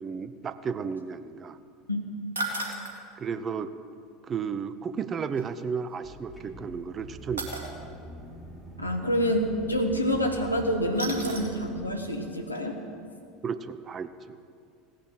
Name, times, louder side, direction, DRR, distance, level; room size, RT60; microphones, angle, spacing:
voice 1, 0.0-1.6 3.2-3.7 4.3-7.7 13.4-14.1, right 6 dB, 30° right, 12 dB, 0.7 m, -33 dB
voice 2, 1.9-2.2 8.8-12.8, equal, 85° left, 3 dB, 1.4 m, -27 dB
sound 1, 2.3-3.0 5.4-5.5 7.4-7.7 10.9-11.6 12.0-12.1 12.5-12.6, right 2 dB, 75° right, 2.0 m, -34 dB
sound 2, 6.0-11.9, equal, ahead, 3.4 m, -44 dB
17.0 x 10.0 x 7.7 m, 2.4 s
figure-of-eight pair, 75°, 0 cm